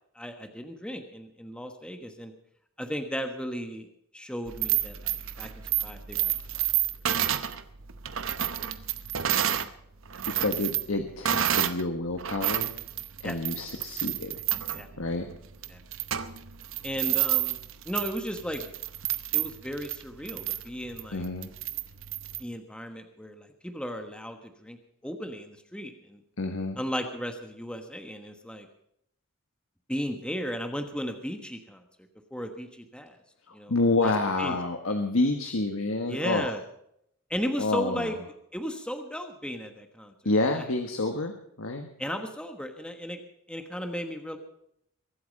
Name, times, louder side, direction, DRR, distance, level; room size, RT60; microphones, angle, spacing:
voice 1, 0.1-2.3 2.8-3.9 4.1-5.5 5.8-6.6 13.2-13.3 14.7-14.9 15.7-15.8 16.8-17.6 17.8-18.7 19.3-21.2 22.4-24.8 25.0-26.2 26.8-28.7 29.9-31.8 32.3-33.2 33.5-33.7 34.0-34.1 34.4-34.6 36.1-36.6 37.3-38.2 38.5-40.1 40.5-40.6 42.0-43.2 43.5-44.4, equal, 5° left, 5 dB, 1.3 m, -35 dB
sound 1, 4.5-9.7 10.1-11.8 12.2-22.4, right 11 dB, 65° right, 0.9 m, -30 dB
voice 2, 10.3-12.7 13.2-14.4 15.0-15.3 21.1-21.5 26.4-26.8 33.5-36.5 37.6-38.1 40.2-41.3 41.6-41.9, left 2 dB, 75° left, 5 dB, 1.4 m, -28 dB
23.5 x 8.6 x 5.4 m, 0.73 s
head